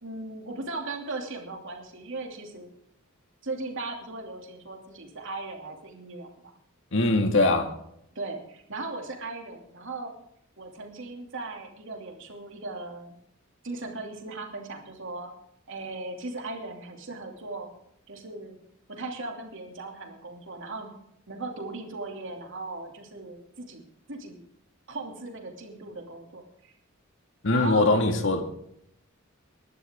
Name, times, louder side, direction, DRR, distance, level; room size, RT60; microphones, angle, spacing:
voice 1, 0.0-2.7 3.4-6.5 8.1-10.1 10.6-13.2 13.6-15.3 15.7-17.7 18.1-18.6 18.9-20.9 21.3-24.4 24.9-26.7 27.5-28.0, right 2 dB, 65° right, 2.9 m, -38 dB
voice 2, 6.9-7.7 27.4-28.4, left 2 dB, 65° left, 2.1 m, -22 dB
20.5 x 12.0 x 3.7 m
head